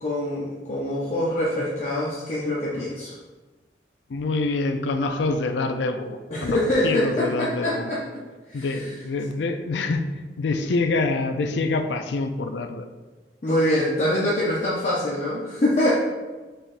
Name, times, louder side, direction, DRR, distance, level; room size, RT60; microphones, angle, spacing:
voice 1, 0.0-3.1 6.3-8.2 8.5-8.9 13.4-15.9, left 1 dB, 40° left, -6 dB, 0.6 m, -24 dB
voice 2, 4.1-7.9 8.5-10.0 10.4-12.9, left 3 dB, 90° left, 7 dB, 0.4 m, -26 dB
5.6 x 3.4 x 2.5 m, 1.2 s
head